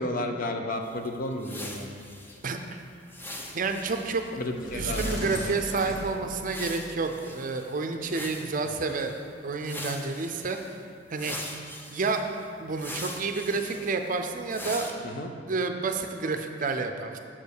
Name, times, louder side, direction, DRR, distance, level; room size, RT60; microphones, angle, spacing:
voice 1, 0.0-1.9 4.3-5.4 15.0-15.3, left 1 dB, 50° left, 5 dB, 0.6 m, -32 dB
sound 1, 0.8-7.7 8.1-9.2 9.6-10.7 11.1-14.9, left 1 dB, 10° left, 0.6 m, -42 dB
voice 2, 2.4-2.8 3.5-4.3 4.7-9.1 9.4-10.8 11.1-11.4 11.9-12.2 12.6-14.9 15.5-17.2, right 4 dB, 45° right, 6 dB, 0.5 m, -30 dB
Sliding door, 4.1-4.2 4.6-6.8, equal, 65° left, 1.1 m, -36 dB
7.1 x 5.3 x 6.5 m, 2.3 s
head